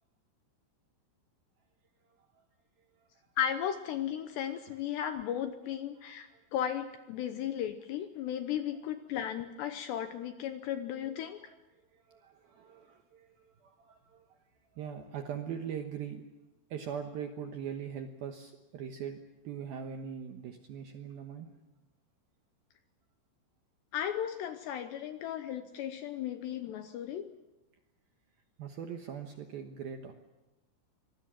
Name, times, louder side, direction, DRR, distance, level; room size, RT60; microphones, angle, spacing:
voice 1, 2.0-2.5 2.8-3.1 4.7-4.8 6.0-6.4 10.6-14.4 14.7-16.2 16.7-21.6 28.6-30.1, right 8 dB, 70° right, 5 dB, 2.3 m, -42 dB
voice 2, 3.4-11.5 23.9-27.3, left 9 dB, 75° left, 8 dB, 2.6 m, -35 dB
25.5 x 20.0 x 7.5 m, 1.1 s
omnidirectional pair, 5.9 m